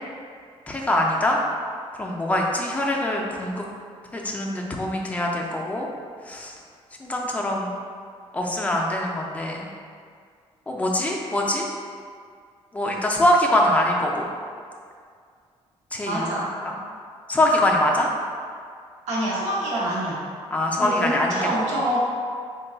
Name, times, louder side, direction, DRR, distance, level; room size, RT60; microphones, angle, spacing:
voice 1, 0.7-1.4 2.0-3.6 4.1-5.9 6.3-6.5 7.0-7.7 8.3-9.7 10.7-11.7 12.7-14.3 15.9-16.3 17.3-18.1 20.5-21.5, left 1 dB, 10° left, -1 dB, 0.4 m, -23 dB
voice 2, 16.1-16.5 19.1-20.2 20.8-22.0, right 1 dB, 90° right, -6 dB, 1.0 m, -26 dB
4.0 x 2.3 x 3.8 m, 2.1 s
cardioid pair, 160°, 11 cm